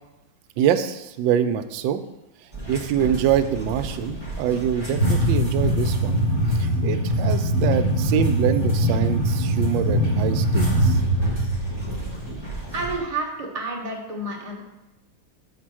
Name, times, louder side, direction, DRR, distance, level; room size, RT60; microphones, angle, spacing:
voice 1, 0.6-2.0 2.7-6.2 6.5-11.0, right 9 dB, 75° right, 8 dB, 1.2 m, -25 dB
sound 1, 2.5-13.0, equal, 15° left, 1.7 m, -23 dB
voice 2, 12.7-14.6, right 2 dB, 25° right, -2 dB, 0.8 m, -30 dB
5.8 x 4.4 x 6.1 m, 0.95 s
omnidirectional pair, 2.2 m